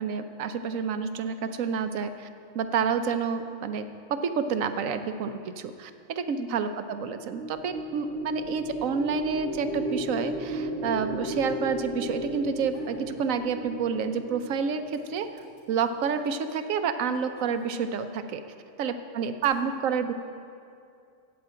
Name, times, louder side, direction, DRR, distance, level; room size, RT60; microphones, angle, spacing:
voice 1, 0.0-2.3 2.5-15.4 15.7-18.4 18.8-20.1, right 6 dB, 85° right, 10 dB, 1.1 m, -29 dB
sound 1, 7.1-15.5, equal, 60° right, 1.9 m, -35 dB
sound 2, 12.7-13.1 13.5-14.2 14.4-18.0 18.8-19.4, left 2 dB, 50° left, 3.0 m, -54 dB
15.0 x 5.1 x 8.8 m, 2.4 s
omnidirectional pair, 1.3 m